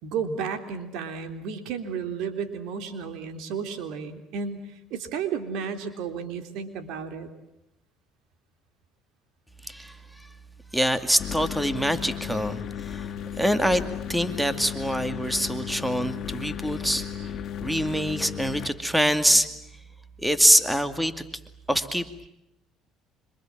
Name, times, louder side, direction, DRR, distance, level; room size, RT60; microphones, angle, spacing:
voice 1, 0.0-7.3, right 6 dB, 75° right, 8 dB, 3.5 m, -33 dB
voice 2, 9.6-10.3 10.7-13.1 13.4-13.8 14.1-19.5 20.2-21.1 21.7-22.3, equal, 5° right, 10 dB, 2.4 m, -25 dB
sound 1, 11.2-18.7, left 9 dB, 50° left, 2.4 m, -35 dB
26.5 x 26.0 x 7.5 m, 0.86 s
supercardioid pair, 85°, 0 cm